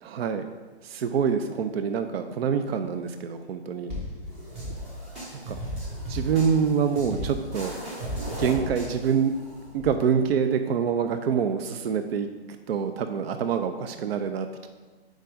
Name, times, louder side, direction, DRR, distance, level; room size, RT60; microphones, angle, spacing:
voice 1, 0.0-0.5 0.8-3.9 5.3-5.6 6.1-7.7 8.4-9.3 9.7-12.3 12.7-14.7, right 7 dB, 65° right, 8 dB, 0.5 m, -26 dB
sound 1, 3.9-9.9, equal, 20° right, 1.3 m, -35 dB
4.7 x 4.4 x 5.0 m, 1.3 s
hypercardioid pair, 140°, 32 cm